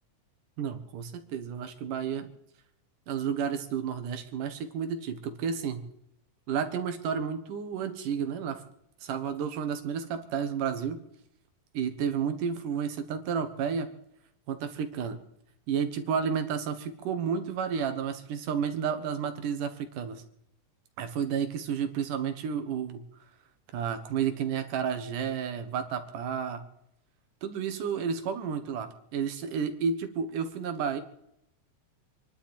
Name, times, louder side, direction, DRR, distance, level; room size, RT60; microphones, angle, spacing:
voice 1, 0.6-2.3 3.1-5.8 6.5-8.6 9.0-11.0 11.7-13.9 14.5-15.2 15.7-20.2 21.0-23.0 23.7-26.6 27.4-31.0, right 7 dB, 90° right, 8 dB, 3.1 m, -31 dB
27.5 x 11.5 x 4.4 m, 0.77 s
omnidirectional pair, 3.6 m